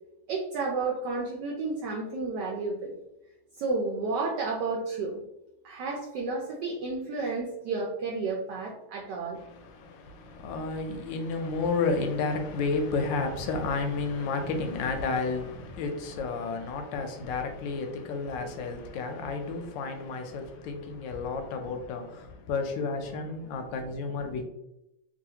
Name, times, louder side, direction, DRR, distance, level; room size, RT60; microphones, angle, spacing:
voice 1, 0.3-2.9 3.6-5.2 5.6-9.4, right 3 dB, 75° right, 1.0 m, -31 dB
voice 2, 9.3-24.4, left 4 dB, 75° left, 1.2 m, -31 dB
3.2 x 2.5 x 2.7 m
omnidirectional pair, 2.2 m